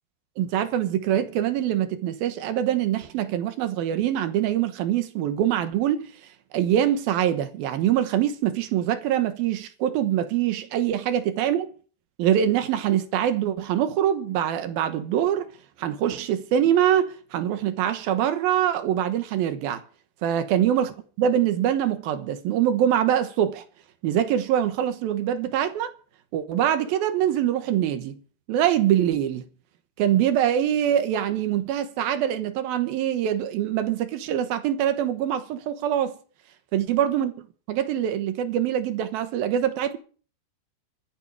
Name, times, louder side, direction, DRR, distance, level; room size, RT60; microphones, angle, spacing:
voice 1, 0.4-6.1 6.5-11.7 12.2-15.5 15.8-19.8 20.2-23.6 24.0-25.9 26.3-28.2 28.5-29.4 30.0-36.1 36.7-37.3 37.7-40.0, right 10 dB, 80° right, 3.0 m, -24 dB
25.0 x 9.2 x 4.8 m
omnidirectional pair, 4.3 m